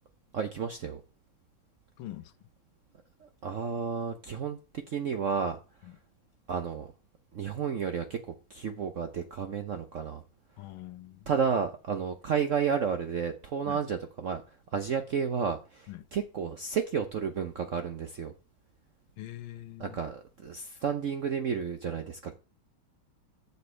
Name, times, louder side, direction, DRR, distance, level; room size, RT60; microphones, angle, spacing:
voice 1, 0.3-1.0 3.2-5.6 6.5-6.9 7.3-8.2 8.5-10.2 11.3-18.3 19.8-22.4, right 6 dB, 65° right, 0.8 m, -32 dB
voice 2, 2.0-2.5 5.8-5.9 10.6-11.3 13.7-13.8 15.9-16.1 19.2-20.0, left 15 dB, 80° left, 1.6 m, -44 dB
11.5 x 6.9 x 3.3 m
omnidirectional pair, 2.2 m